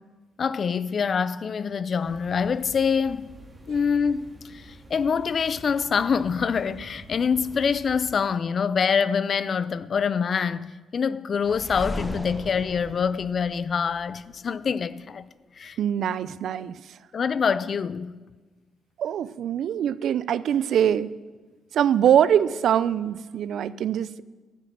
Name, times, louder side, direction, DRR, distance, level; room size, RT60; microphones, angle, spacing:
voice 1, 0.4-3.4 3.7-15.3 15.6-15.8 17.1-18.1, left 6 dB, 45° left, 0.5 m, -25 dB
sound 1, 2.0-8.2, right 2 dB, 20° right, 2.6 m, -47 dB
sound 2, 11.4-14.4, left 1 dB, 10° left, 1.1 m, -36 dB
voice 2, 15.8-17.0 19.0-21.1 21.7-24.2, right 9 dB, 70° right, 0.4 m, -23 dB
12.5 x 9.1 x 7.4 m
cardioid pair, 90°, 0 cm